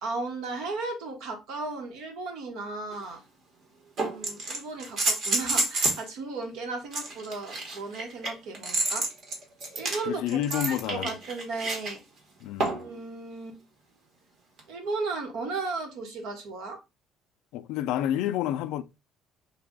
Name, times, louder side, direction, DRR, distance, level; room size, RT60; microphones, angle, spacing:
voice 1, 0.0-3.2 4.0-9.1 9.7-12.0 12.8-13.6 14.7-16.8, right 3 dB, 70° right, 1.2 m, -35 dB
sound 1, 2.9-3.0 4.0-6.1 6.9-11.9 12.6-12.9 14.6-14.7, right 2 dB, 45° right, 1.1 m, -29 dB
voice 2, 10.1-11.1 12.4-12.9 17.5-18.8, left 11 dB, 80° left, 0.3 m, -29 dB
3.3 x 2.3 x 3.6 m
cardioid pair, 170°, 0 cm